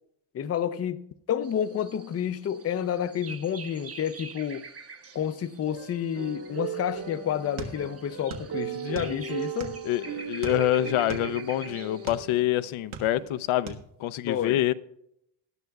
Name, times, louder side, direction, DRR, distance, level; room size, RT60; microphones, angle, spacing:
voice 1, 0.3-4.7 5.1-9.8 14.3-14.7, left 9 dB, 35° left, 0.5 m, -30 dB
sound 1, 1.4-12.4, right 4 dB, 30° right, 0.9 m, -46 dB
sound 2, 5.7-12.6 13.2-13.5, right 6 dB, 60° right, 1.8 m, -37 dB
sound 3, 7.6-8.5 8.8-9.9 10.4-12.3 12.7-13.4 13.7-13.9, right 4 dB, 90° right, 1.6 m, -39 dB
voice 2, 9.8-14.7, left 13 dB, 85° left, 0.7 m, -26 dB
19.0 x 11.5 x 2.3 m
cardioid pair, 135°, 48 cm